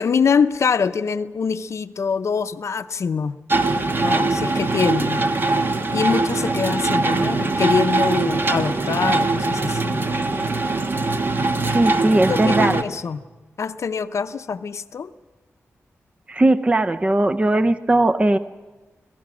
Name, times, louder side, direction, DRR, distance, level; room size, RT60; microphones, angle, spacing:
voice 1, 0.0-3.4 4.0-5.2 5.9-10.2 12.3-13.2 13.6-15.1, left 6 dB, 65° left, 11 dB, 0.6 m, -24 dB
sound 1, 3.5-12.8, right 3 dB, 45° right, 1.2 m, -22 dB
voice 2, 11.7-12.7 16.3-18.4, right 2 dB, 25° right, 10 dB, 0.6 m, -18 dB
25.5 x 17.0 x 6.1 m, 1.2 s
wide cardioid pair, 85°, 5 cm